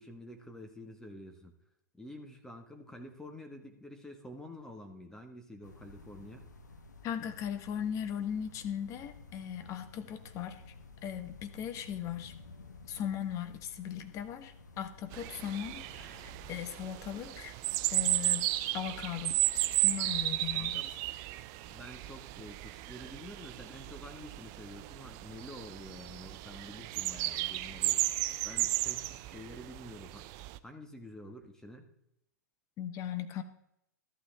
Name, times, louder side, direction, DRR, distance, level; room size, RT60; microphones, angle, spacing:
voice 1, 0.0-1.5 1.9-6.5 20.5-20.9 21.7-28.0 28.4-30.2 30.6-31.9, left 1 dB, 5° left, 4 dB, 1.6 m, -48 dB
sound 1, 5.6-16.5, left 3 dB, 85° left, 1.4 m, -53 dB
voice 2, 7.0-10.6 11.0-12.3 12.9-17.5 17.9-19.4 19.8-20.8 32.8-33.4, left 9 dB, 35° left, 9 dB, 1.3 m, -38 dB
sound 2, 15.1-30.6, right 16 dB, 40° right, 0.6 m, -34 dB
13.5 x 12.0 x 3.5 m, 0.77 s
hypercardioid pair, 110°, 9 cm